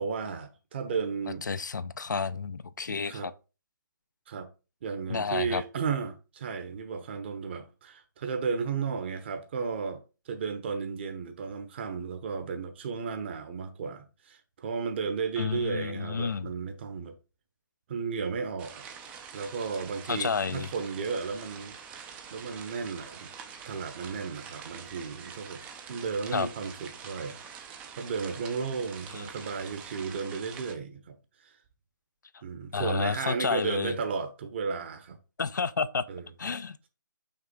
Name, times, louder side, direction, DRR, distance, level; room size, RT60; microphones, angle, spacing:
voice 1, 0.0-1.4 3.1-3.3 4.3-4.5 4.8-17.2 17.9-23.3 23.6-27.4 27.9-31.2 31.4-31.5 32.4-35.2 36.1-36.3, right 5 dB, 35° right, 1.0 m, -34 dB
voice 2, 1.5-3.3 5.1-5.6 15.4-16.5 20.1-20.7 26.3-26.5 29.1-29.3 32.7-33.9 35.4-36.0 36.4-36.9, left 5 dB, 65° left, 0.5 m, -30 dB
sound 1, 18.6-30.7, right 6 dB, 10° right, 0.5 m, -45 dB
5.8 x 3.7 x 5.1 m
figure-of-eight pair, 150°, 11 cm